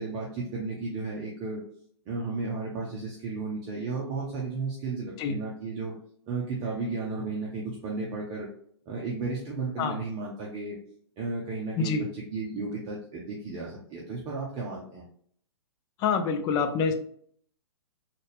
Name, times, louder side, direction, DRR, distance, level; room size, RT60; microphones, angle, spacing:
voice 1, 0.0-1.6 2.1-5.9 6.3-8.5 8.9-10.8 11.2-15.0, right 3 dB, 30° right, -4 dB, 0.8 m, -34 dB
voice 2, 11.8-12.1 16.0-16.9, left 5 dB, 25° left, 6 dB, 0.5 m, -26 dB
4.0 x 2.5 x 3.4 m, 0.62 s
hypercardioid pair, 120°, 15 cm